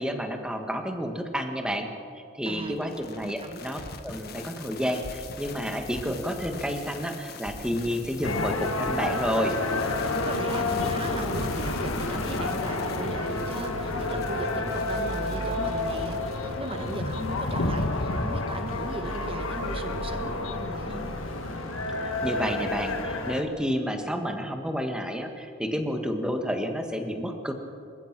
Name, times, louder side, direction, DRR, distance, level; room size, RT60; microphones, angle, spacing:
voice 1, 0.0-1.9 2.1-9.6 22.0-27.5, equal, 5° right, 4 dB, 1.7 m, -30 dB
voice 2, 2.4-2.9 3.2-3.6 10.2-21.1, right 1 dB, 25° right, 6 dB, 1.6 m, -38 dB
sound 1, 2.6-17.8, left 4 dB, 50° left, 1.5 m, -43 dB
sound 2, 8.2-23.4, left 2 dB, 75° left, 1.6 m, -29 dB
sound 3, 11.1-23.0, right 1 dB, 70° right, 1.4 m, -42 dB
27.5 x 15.5 x 6.1 m, 2.4 s
head